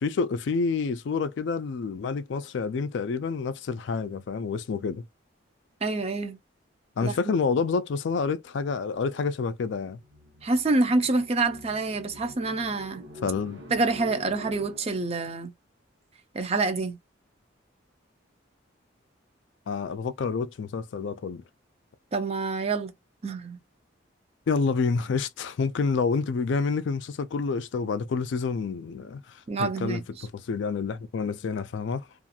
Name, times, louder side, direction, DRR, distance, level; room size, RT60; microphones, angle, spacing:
voice 1, 0.0-5.0 7.0-10.0 13.2-13.6 19.7-21.4 24.5-29.2 29.6-32.0, left 4 dB, 65° left, 0.4 m, -28 dB
voice 2, 5.8-6.4 7.0-7.1 10.4-13.0 13.7-15.5 16.3-17.0 22.1-22.9 23.2-23.6 29.5-30.0, right 3 dB, 30° right, 0.4 m, -27 dB
sound 1, 9.8-15.2, equal, 70° right, 1.0 m, -46 dB
2.4 x 2.3 x 2.7 m
head